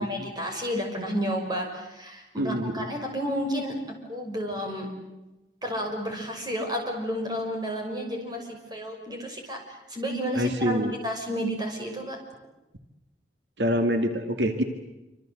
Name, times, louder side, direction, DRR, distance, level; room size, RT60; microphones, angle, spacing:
voice 1, 0.0-3.8 4.1-4.9 5.6-12.2, equal, 25° right, 2 dB, 6.1 m, -31 dB
voice 2, 2.4-2.9 10.4-10.9 13.6-14.6, equal, 75° right, 6 dB, 2.2 m, -25 dB
27.0 x 26.5 x 7.9 m, 1.0 s
head